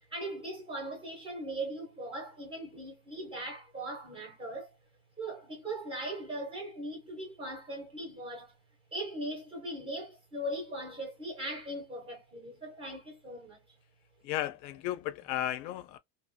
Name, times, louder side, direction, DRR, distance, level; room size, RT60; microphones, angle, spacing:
voice 1, 0.1-4.8 5.2-8.5 8.9-13.6, right 1 dB, 10° right, 0.4 m, -39 dB
voice 2, 14.2-16.0, left 13 dB, 85° left, 0.6 m, -34 dB
2.7 x 2.3 x 2.4 m
cardioid pair, 160°, 49 cm